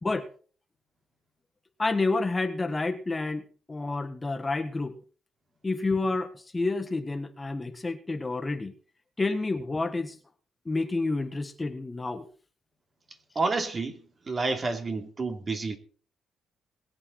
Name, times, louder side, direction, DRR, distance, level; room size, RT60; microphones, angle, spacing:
voice 1, 1.8-3.4 3.7-5.0 5.6-8.7 9.2-10.2 10.7-12.3, left 3 dB, 20° left, 1.5 m, -29 dB
voice 2, 13.3-15.8, right 3 dB, 35° right, 3.1 m, -30 dB
21.5 x 8.8 x 4.3 m
cardioid pair, 90°, 0 cm